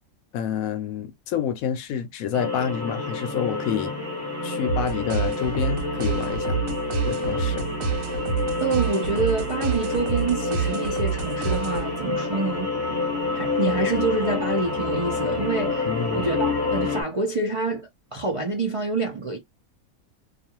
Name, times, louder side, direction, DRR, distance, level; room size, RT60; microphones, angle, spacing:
voice 1, 0.3-3.9 4.4-6.6 7.0-7.7 15.8-16.2, left 8 dB, 80° left, 1.0 m, -28 dB
sound 1, 2.3-17.0, left 3 dB, 20° right, 1.1 m, -28 dB
sound 2, 4.6-12.1, right 6 dB, 70° right, 1.0 m, -28 dB
voice 2, 8.6-12.7 13.3-15.9 16.1-19.4, right 3 dB, 45° right, 0.4 m, -27 dB
2.5 x 2.4 x 2.8 m
omnidirectional pair, 1.5 m